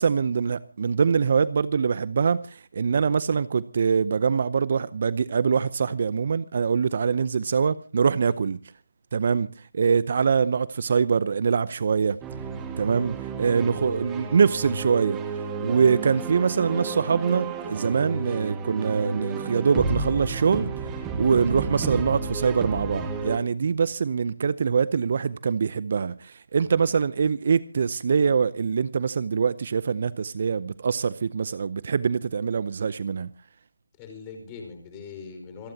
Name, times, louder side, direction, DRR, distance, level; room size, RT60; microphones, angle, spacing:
voice 1, 0.0-8.6 9.1-9.5 9.7-12.2 12.8-15.2 15.6-20.7 21.2-33.3, right 6 dB, 40° right, 0.6 m, -24 dB
sound 1, 12.2-23.4, right 4 dB, 10° right, 1.7 m, -32 dB
voice 2, 34.0-35.7, left 5 dB, 15° left, 4.9 m, -42 dB
27.0 x 14.0 x 2.8 m
figure-of-eight pair, 160°, 0 cm